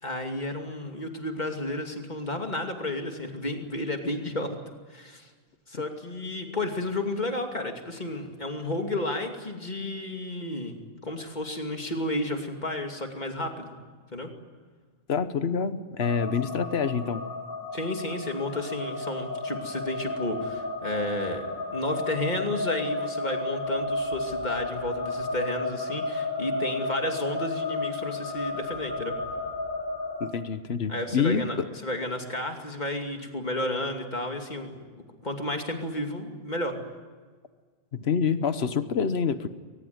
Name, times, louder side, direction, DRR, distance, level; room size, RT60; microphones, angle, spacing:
voice 1, 0.0-4.6 4.9-5.3 5.7-10.8 11.0-13.7 14.1-14.3 17.7-29.2 30.9-31.6 31.8-36.8, left 1 dB, 45° left, 4 dB, 2.8 m, -32 dB
voice 2, 15.1-17.2 30.2-31.7 37.9-39.5, left 6 dB, 85° left, 12 dB, 1.3 m, -27 dB
sound 1, 16.0-30.3, left 2 dB, 60° left, 3.0 m, -32 dB
23.0 x 20.0 x 9.5 m, 1.5 s
omnidirectional pair, 1.0 m